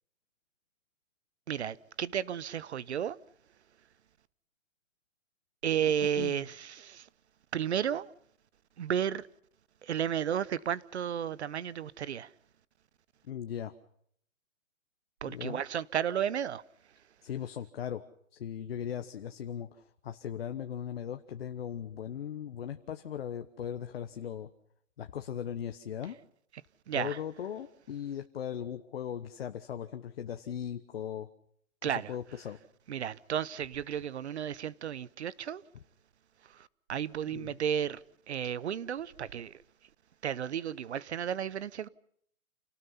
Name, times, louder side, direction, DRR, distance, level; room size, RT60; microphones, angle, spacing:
voice 1, 1.5-3.2 5.6-7.1 7.5-8.1 8.8-9.3 9.8-12.3 15.2-16.6 26.9-27.2 31.8-32.1 32.9-35.6 36.4-39.5 40.2-41.9, right 9 dB, 55° right, 0.9 m, -33 dB
voice 2, 13.3-13.7 15.3-15.6 17.2-18.0 18.3-19.7 20.0-24.5 25.0-26.2 26.9-31.3 31.8-32.6 37.3-37.5, left 9 dB, 50° left, 1.3 m, -38 dB
29.0 x 18.5 x 5.6 m
hypercardioid pair, 165°, 40 cm